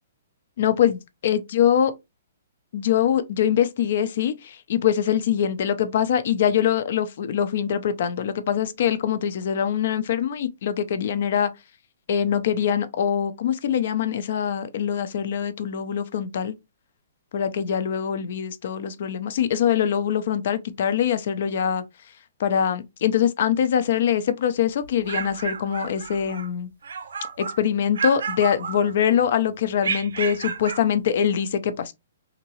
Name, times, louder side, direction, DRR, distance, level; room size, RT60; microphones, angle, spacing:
voice 1, 0.6-1.0 1.2-1.9 2.7-11.5 12.1-16.5 17.3-21.8 22.4-26.7 27.4-31.9, left 9 dB, 55° left, 0.5 m, -23 dB
sound 1, 24.8-26.5 26.8-27.6 27.9-29.2 29.8-30.9, right 6 dB, 80° right, 0.6 m, -31 dB
2.9 x 2.7 x 2.8 m
hypercardioid pair, 155°, 0 cm